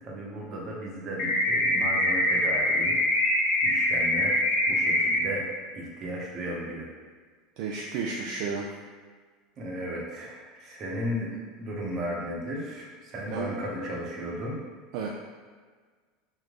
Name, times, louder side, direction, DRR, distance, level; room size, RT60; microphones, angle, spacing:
voice 1, 0.0-5.5 5.7-6.9 9.6-11.3 11.6-14.6, equal, 40° right, -2 dB, 1.0 m, -35 dB
sound 1, 1.2-5.2, left 1 dB, 50° left, 0.7 m, -24 dB
voice 2, 7.6-8.7 13.3-13.5 14.9-15.1, right 5 dB, 60° right, -1 dB, 0.4 m, -32 dB
3.1 x 3.1 x 3.8 m, 1.5 s
hypercardioid pair, 80°, 0 cm